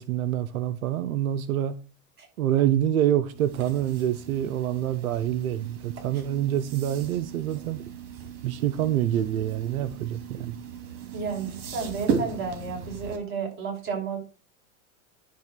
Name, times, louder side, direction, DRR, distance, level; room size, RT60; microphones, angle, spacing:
voice 1, 0.0-1.8 2.4-7.9 8.4-10.6, right 11 dB, 90° right, 0.8 m, -26 dB
sound 1, 3.3-13.2, right 6 dB, 65° right, 2.6 m, -36 dB
voice 2, 11.1-14.2, right 5 dB, 30° right, 5.4 m, -32 dB
10.5 x 3.7 x 6.7 m
supercardioid pair, 120°, 41 cm